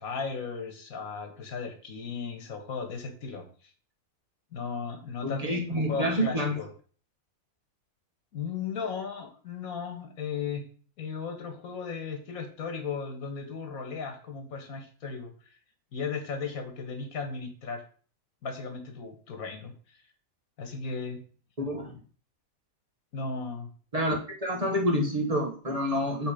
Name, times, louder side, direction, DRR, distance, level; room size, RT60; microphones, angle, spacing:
voice 1, 0.0-3.4 4.5-6.7 8.3-10.7 11.0-15.3 15.9-17.8 18.4-20.0 20.6-21.2 23.1-23.7, left 5 dB, 85° left, 4 dB, 1.8 m, -36 dB
voice 2, 5.2-6.5 21.6-21.9 23.9-26.3, equal, 25° right, -1 dB, 1.4 m, -28 dB
7.5 x 3.5 x 4.9 m, 0.42 s
omnidirectional pair, 1.5 m